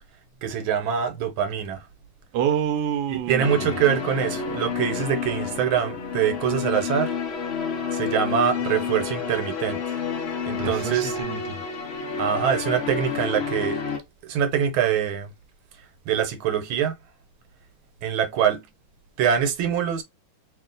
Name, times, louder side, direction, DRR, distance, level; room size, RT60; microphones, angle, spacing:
voice 1, 0.4-1.9 3.1-7.1 7.9-10.0 10.5-11.2 12.2-13.8 14.2-15.3 16.1-17.0 18.0-18.6 19.2-20.0, right 8 dB, 85° right, 1.6 m, -24 dB
voice 2, 2.3-3.7 10.6-11.6, right 9 dB, 70° right, 1.1 m, -27 dB
sound 1, 3.4-14.0, left 6 dB, 65° left, 0.6 m, -30 dB
3.1 x 2.7 x 3.8 m
omnidirectional pair, 2.2 m